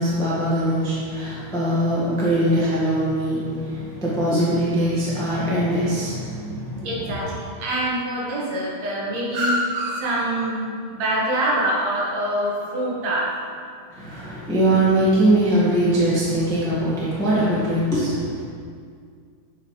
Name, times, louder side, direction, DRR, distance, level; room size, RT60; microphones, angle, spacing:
voice 1, 0.0-7.1 13.9-18.5, right 1 dB, 5° left, -9 dB, 0.6 m, -22 dB
voice 2, 6.8-13.3, right 1 dB, 65° right, -5 dB, 2.3 m, -25 dB
7.9 x 5.7 x 3.3 m, 2.2 s
omnidirectional pair, 3.5 m